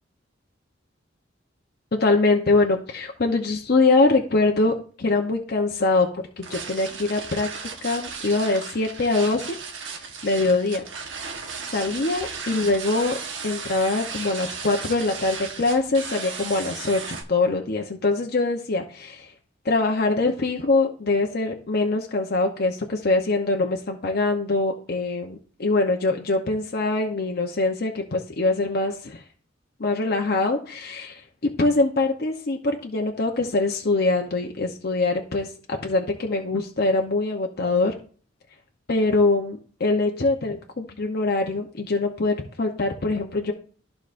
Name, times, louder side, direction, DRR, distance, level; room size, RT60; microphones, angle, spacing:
voice 1, 1.9-7.5 7.8-9.6 10.2-10.9 11.7-13.2 13.4-19.3 19.6-29.2 29.8-31.2 31.6-37.9 38.9-43.5, left 3 dB, 55° left, 2 dB, 0.8 m, -23 dB
sound 1, 6.4-17.2, right 5 dB, 75° right, 1.2 m, -35 dB
13.5 x 4.9 x 2.5 m, 0.43 s
head